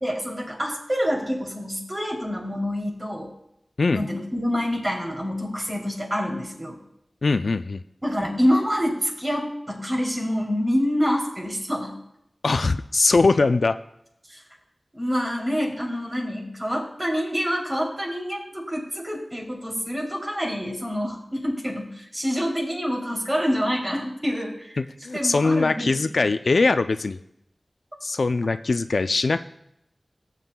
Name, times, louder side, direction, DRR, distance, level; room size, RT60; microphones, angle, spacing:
voice 1, 0.0-3.3 3.9-6.8 8.0-12.0 14.3-14.4 14.9-24.8 25.1-26.3, equal, 25° right, -1 dB, 2.9 m, -27 dB
voice 2, 3.8-4.1 7.2-7.8 12.4-13.8 24.8-27.2 28.0-29.4, left 3 dB, 75° left, 11 dB, 0.4 m, -21 dB
18.0 x 7.7 x 2.2 m, 0.80 s
wide cardioid pair, 60°, 0 cm